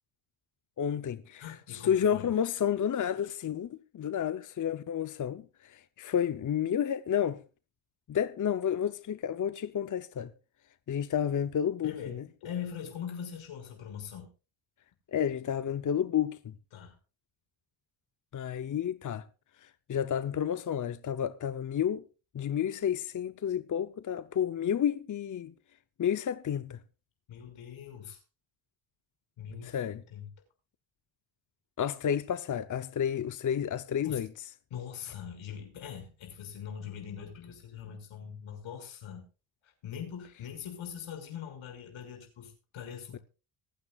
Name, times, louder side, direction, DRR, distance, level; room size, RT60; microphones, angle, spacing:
voice 1, 0.8-1.4 1.7-7.4 8.1-10.3 10.9-12.2 15.1-16.4 18.3-19.2 19.6-22.0 22.3-25.5 26.0-26.8 29.6-30.0 31.8-34.3, left 9 dB, 40° left, 0.7 m, -31 dB
voice 2, 1.4-2.3 11.8-12.2 12.4-14.3 16.7-16.9 27.3-28.2 29.4-30.3 34.0-34.2 34.7-39.2 39.6-43.2, left 8 dB, 80° left, 6.0 m, -42 dB
25.5 x 9.4 x 2.4 m
cardioid pair, 85°, 47 cm